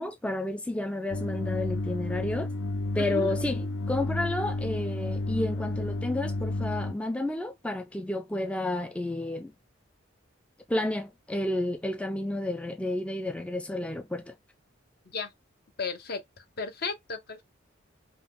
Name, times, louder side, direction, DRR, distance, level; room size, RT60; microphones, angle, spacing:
voice 1, 0.0-2.5 2.9-9.5 10.7-14.3, left 1 dB, 5° left, 0.3 m, -31 dB
sound 1, 1.1-6.9, left 2 dB, 80° left, 0.5 m, -31 dB
voice 2, 3.0-3.3 15.1-15.3 15.8-17.4, left 4 dB, 50° left, 0.9 m, -35 dB
5.3 x 2.4 x 3.6 m
head